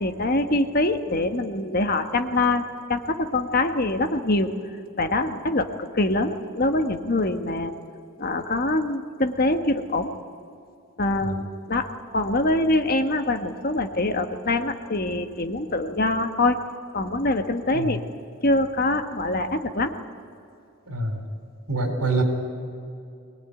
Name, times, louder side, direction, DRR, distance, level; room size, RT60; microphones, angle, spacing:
voice 1, 0.0-2.6 2.9-4.5 5.0-7.7 8.2-10.1 11.0-11.9 12.1-16.6 16.9-18.0 18.4-19.9, left 2 dB, 45° left, 7 dB, 1.4 m, -24 dB
voice 2, 20.9-21.2 21.7-22.2, right 2 dB, 85° right, 5 dB, 4.3 m, -26 dB
22.5 x 19.0 x 9.9 m, 2.6 s
head